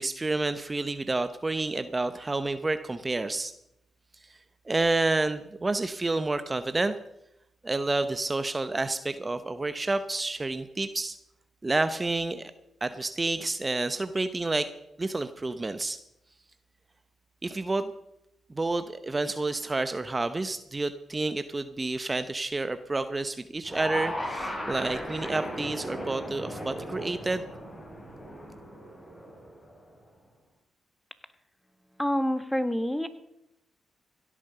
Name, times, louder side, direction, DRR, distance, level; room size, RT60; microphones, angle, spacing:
voice 1, 0.0-3.5 4.2-4.4 4.7-6.9 7.6-11.2 11.6-12.5 12.8-14.7 15.0-16.0 17.4-17.9 18.5-27.4, right 2 dB, 30° right, 11 dB, 0.8 m, -29 dB
sound 1, 23.6-29.9, equal, 30° left, 6.0 m, -37 dB
voice 2, 31.9-33.1, equal, 5° left, 11 dB, 1.5 m, -27 dB
16.5 x 8.5 x 6.7 m, 0.84 s
supercardioid pair, 50°, 0 cm